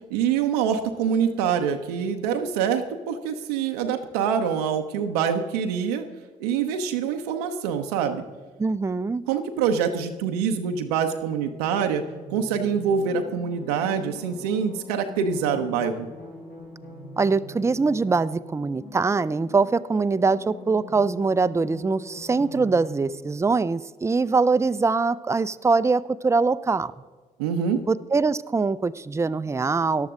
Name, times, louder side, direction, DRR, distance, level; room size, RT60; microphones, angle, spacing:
voice 1, 0.1-6.0 6.4-8.2 9.3-12.0 12.3-16.1 27.4-27.8, right 7 dB, 80° right, 5 dB, 0.7 m, -25 dB
voice 2, 8.6-9.2 17.2-26.9 27.9-30.1, right 4 dB, 15° right, 15 dB, 0.4 m, -23 dB
sound 1, 11.0-23.1, left 2 dB, 75° left, 4.5 m, -43 dB
14.0 x 11.5 x 3.6 m, 1.3 s
figure-of-eight pair, 40°, 19 cm